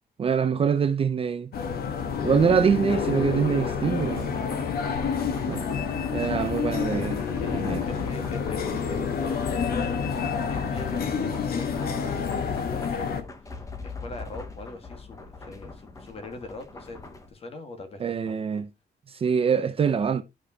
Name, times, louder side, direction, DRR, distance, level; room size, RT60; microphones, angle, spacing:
voice 1, 0.2-1.5 2.2-4.3 5.5-5.7 6.1-7.2 7.5-7.8 18.0-18.7 19.1-20.2, right 6 dB, 30° right, 0.6 m, -24 dB
sound 1, 1.5-13.2, left 6 dB, 60° left, 1.3 m, -28 dB
sound 2, 3.6-17.3, left 3 dB, 20° left, 1.0 m, -42 dB
voice 2, 7.4-9.2 10.2-18.4, left 2 dB, 35° left, 1.7 m, -42 dB
12.0 x 5.1 x 2.8 m
cardioid pair, 180°, 18 cm